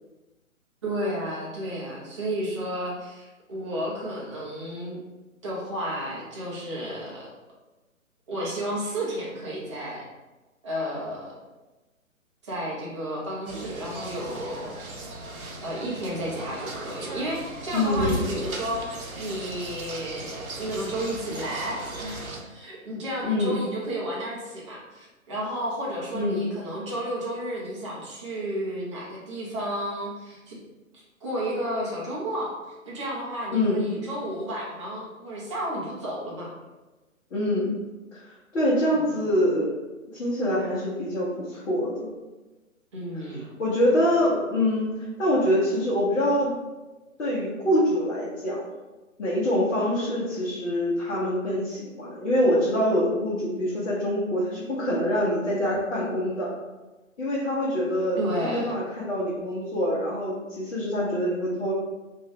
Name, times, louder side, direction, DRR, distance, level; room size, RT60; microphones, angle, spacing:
voice 1, 0.8-5.0 5.4-7.3 8.3-10.1 10.6-11.3 12.4-14.7 15.6-22.2 22.5-30.6 30.9-32.6 32.8-36.5 38.9-39.1 42.9-43.5 58.2-58.7, equal, 25° right, -6 dB, 0.5 m, -32 dB
sound 1, 13.5-22.4, right 1 dB, 90° right, 0.6 m, -37 dB
voice 2, 17.7-18.3 23.2-23.6 26.1-26.4 33.5-33.8 37.3-37.7 38.1-39.7 40.1-42.1 43.6-46.5 47.2-48.8 49.2-56.5 57.2-61.7, left 1 dB, 55° left, -8 dB, 1.0 m, -25 dB
2.6 x 2.2 x 3.4 m, 1.1 s
figure-of-eight pair, 135°, 41 cm